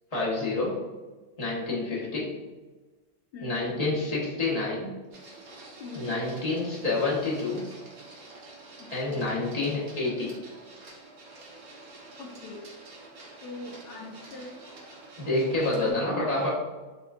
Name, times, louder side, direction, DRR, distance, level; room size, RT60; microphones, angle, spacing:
voice 1, 0.1-0.8 1.4-2.3 3.4-4.9 5.9-7.7 8.9-10.3 15.2-16.5, left 2 dB, 30° left, -6 dB, 0.9 m, -28 dB
voice 2, 1.7-2.1 3.3-3.9 5.8-6.2 8.8-9.5 12.2-12.7 13.4-14.7 15.8-16.5, left 3 dB, 75° left, 0 dB, 1.1 m, -41 dB
Printer, 5.1-15.9, right 2 dB, 60° right, 1.3 m, -48 dB
4.2 x 3.7 x 2.3 m, 1.3 s
omnidirectional pair, 1.8 m